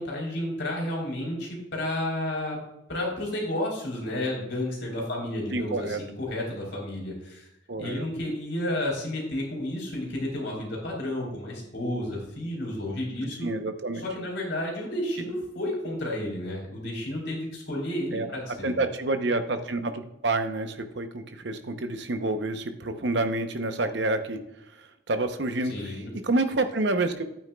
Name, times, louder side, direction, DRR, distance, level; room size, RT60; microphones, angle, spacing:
voice 1, 0.0-2.6 2.9-7.5 7.8-13.5 14.0-18.8 25.7-26.1, left 1 dB, 75° left, -1 dB, 3.6 m, -31 dB
voice 2, 5.5-6.0 7.7-8.1 13.4-14.0 18.1-18.3 18.6-24.4 24.8-26.0 26.2-27.2, right 2 dB, 65° right, 8 dB, 0.8 m, -28 dB
11.0 x 8.9 x 2.3 m, 0.86 s
head